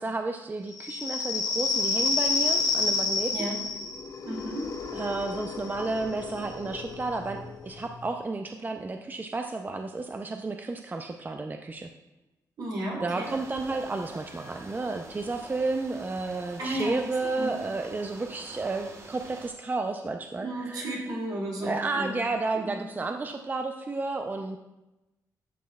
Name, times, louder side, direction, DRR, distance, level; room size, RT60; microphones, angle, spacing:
voice 1, 0.0-3.5 4.9-11.9 13.0-21.0 21.6-24.6, right 3 dB, 25° right, 5 dB, 0.5 m, -32 dB
sound 1, 0.7-8.0, left 3 dB, 65° left, 1.0 m, -30 dB
voice 2, 4.2-4.7 12.6-13.3 16.6-17.0 17.4-17.6 20.4-22.2 22.6-22.8, right 1 dB, 70° right, -3 dB, 2.7 m, -33 dB
sound 2, 13.2-19.5, right 2 dB, 40° right, 1.1 m, -46 dB
11.5 x 6.3 x 2.3 m, 0.98 s
cardioid pair, 75°, 7 cm